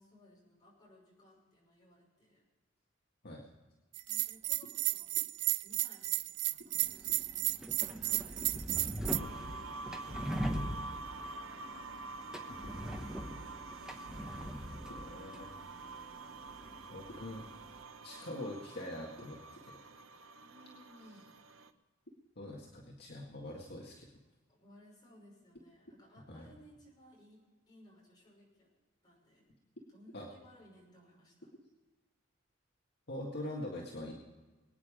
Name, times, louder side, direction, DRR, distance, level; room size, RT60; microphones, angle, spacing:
voice 1, 0.0-2.4 4.0-5.3 5.6-7.4 7.8-11.4 12.7-14.3 20.4-21.3 24.5-28.7 29.0-29.5 29.9-31.5 33.7-33.8, equal, 20° left, -3 dB, 5.8 m, -61 dB
Bell, 3.9-9.2, right 16 dB, 60° right, 0.4 m, -33 dB
sound 1, 6.8-17.8, equal, 5° right, 1.1 m, -42 dB
sound 2, 9.1-21.7, right 3 dB, 80° right, 0.9 m, -47 dB
voice 2, 14.9-15.5 16.9-17.5 18.0-19.8 22.4-24.1 26.3-26.5 30.1-30.3 33.1-34.1, left 1 dB, 55° left, -2 dB, 1.9 m, -43 dB
23.0 x 9.3 x 5.0 m, 1.2 s
head